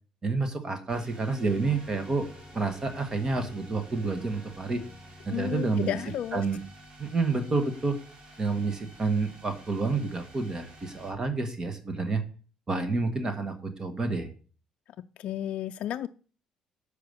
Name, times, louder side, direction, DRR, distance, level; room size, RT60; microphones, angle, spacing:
voice 1, 0.2-2.3 2.5-4.8 5.2-6.0 6.3-6.6 7.0-8.0 8.4-12.2 12.7-14.3, right 3 dB, 30° right, 7 dB, 1.3 m, -29 dB
sound 1, 0.9-6.1, left 2 dB, 15° left, 1.3 m, -50 dB
sound 2, 0.9-11.1, right 1 dB, 45° right, 2.4 m, -51 dB
voice 2, 5.3-6.4 15.2-16.1, left 11 dB, 65° left, 8 dB, 0.4 m, -32 dB
6.8 x 4.9 x 6.6 m, 0.39 s
cardioid pair, 95°, 2 cm